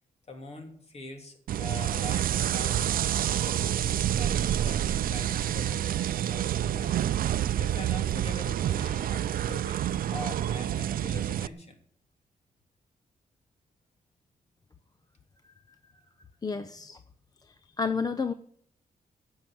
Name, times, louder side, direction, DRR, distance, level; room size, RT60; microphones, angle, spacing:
voice 1, 0.3-3.0 3.5-3.9 4.1-7.0 7.6-9.8 10.1-11.8, left 2 dB, 45° left, 4 dB, 3.0 m, -44 dB
sound 1, 1.5-11.5, right 11 dB, 80° right, 0.5 m, -28 dB
voice 2, 16.4-17.0 17.5-18.3, left 5 dB, 25° left, 11 dB, 0.7 m, -31 dB
17.0 x 6.5 x 9.2 m, 0.63 s
wide cardioid pair, 145°, 15 cm